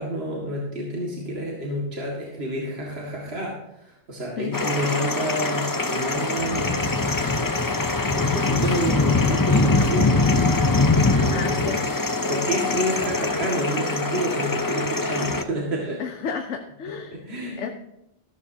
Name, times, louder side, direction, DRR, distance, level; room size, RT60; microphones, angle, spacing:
voice 1, 0.0-6.8 7.6-7.7 8.1-10.3 11.2-11.8 12.3-16.0 17.1-17.7, equal, 60° right, -3 dB, 2.2 m, -29 dB
voice 2, 4.4-4.7 11.3-11.8 16.0-17.2 17.6-17.7, left 6 dB, 85° left, 5 dB, 1.1 m, -31 dB
sound 1, 4.5-15.4, left 3 dB, 25° left, 0.5 m, -23 dB
13.5 x 13.0 x 2.8 m, 0.82 s
omnidirectional pair, 1.2 m